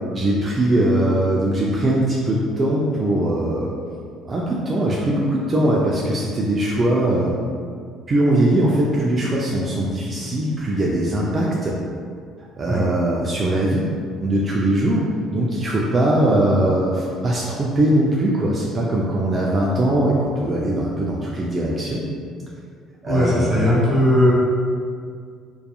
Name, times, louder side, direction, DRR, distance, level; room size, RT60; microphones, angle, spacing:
voice 1, 0.1-3.7 4.3-7.4 8.1-11.7 12.5-13.9 14.2-22.0 23.0-23.5, right 1 dB, 35° right, -4 dB, 0.3 m, -21 dB
voice 2, 23.0-24.3, left 1 dB, ahead, -9 dB, 1.2 m, -18 dB
2.7 x 2.3 x 2.3 m, 2.2 s
supercardioid pair, 80°, 0 cm